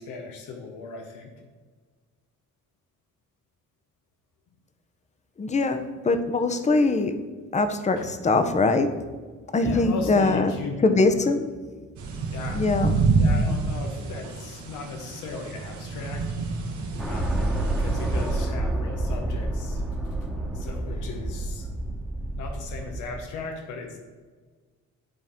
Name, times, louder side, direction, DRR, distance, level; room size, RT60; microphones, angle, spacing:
voice 1, 0.0-1.3 8.0-8.2 9.6-10.8 11.0-11.4 12.3-12.6 13.2-16.3 17.0-19.8 20.5-21.8 22.4-24.0, left 4 dB, 90° left, 3 dB, 1.0 m, -37 dB
voice 2, 5.4-7.1 7.5-9.0 9.5-10.5 10.8-11.5 12.5-13.0, left 3 dB, 25° left, 8 dB, 0.7 m, -22 dB
sound 1, 12.0-18.5, right 3 dB, 75° right, 1.3 m, -28 dB
sound 2, 17.0-23.2, right 1 dB, ahead, 1.1 m, -28 dB
9.5 x 4.3 x 3.6 m, 1.4 s
cardioid pair, 90°, 30 cm